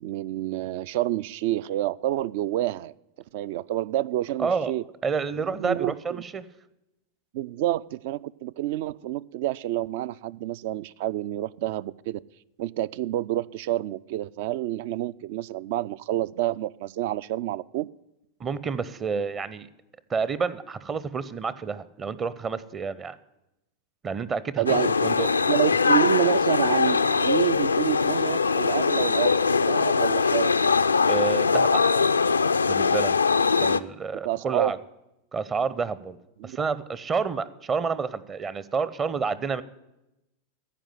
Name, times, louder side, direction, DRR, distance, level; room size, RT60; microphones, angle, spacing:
voice 1, 0.0-2.9 3.3-4.8 5.6-6.2 7.3-12.2 12.6-17.9 24.6-24.9 25.5-30.5 33.6-33.8 34.2-34.7 36.4-36.6, right 14 dB, 50° right, 20 dB, 0.3 m, -28 dB
voice 2, 4.4-4.7 5.0-6.4 18.4-19.7 20.1-23.2 24.0-25.3 31.1-31.8 32.7-33.2 33.6-34.8 35.3-36.2 36.4-39.6, right 5 dB, 25° right, 17 dB, 0.7 m, -29 dB
sound 1, 24.7-33.8, left 4 dB, 75° left, 0.3 m, -22 dB
15.0 x 5.0 x 7.6 m, 0.91 s
figure-of-eight pair, 90°, 0 cm